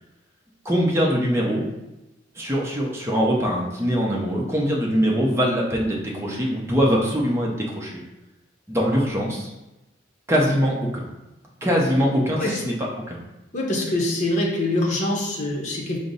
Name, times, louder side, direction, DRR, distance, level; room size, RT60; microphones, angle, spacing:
voice 1, 0.6-1.6 2.4-8.0 8.7-9.5 10.3-11.1 11.6-13.2, equal, 15° right, -3 dB, 0.6 m, -22 dB
voice 2, 13.5-16.0, left 1 dB, 40° left, -2 dB, 0.7 m, -24 dB
5.1 x 2.0 x 3.9 m, 0.97 s
head